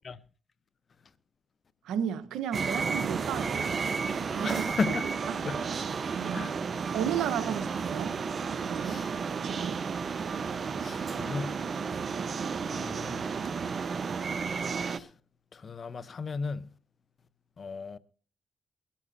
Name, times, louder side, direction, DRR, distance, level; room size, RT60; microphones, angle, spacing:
voice 1, 1.8-3.8 4.3-4.7 5.3-5.4 5.7-5.9 6.1-6.6 6.9-8.2 8.5-9.0 9.4-9.8, right 9 dB, 90° right, 1.1 m, -34 dB
sound 1, 2.5-15.0, right 5 dB, 50° right, 1.0 m, -32 dB
voice 2, 4.4-5.1 5.4-5.6 6.3-6.5 8.8-9.1 10.8-11.6 12.7-13.2 14.8-15.1 15.5-16.7 17.6-18.0, left 4 dB, 50° left, 0.8 m, -35 dB
22.0 x 13.0 x 2.7 m
cardioid pair, 65°, 0 cm